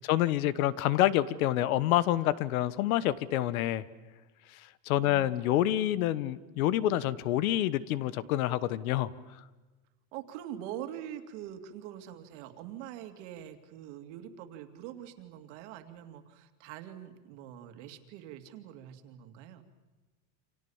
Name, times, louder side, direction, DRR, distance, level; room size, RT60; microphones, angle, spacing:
voice 1, 0.0-3.8 4.5-9.1, left 13 dB, 80° left, 17 dB, 1.3 m, -27 dB
voice 2, 5.0-5.3 10.1-19.7, right 11 dB, 55° right, 7 dB, 2.5 m, -44 dB
28.5 x 27.0 x 7.2 m, 1.2 s
supercardioid pair, 175°, 42 cm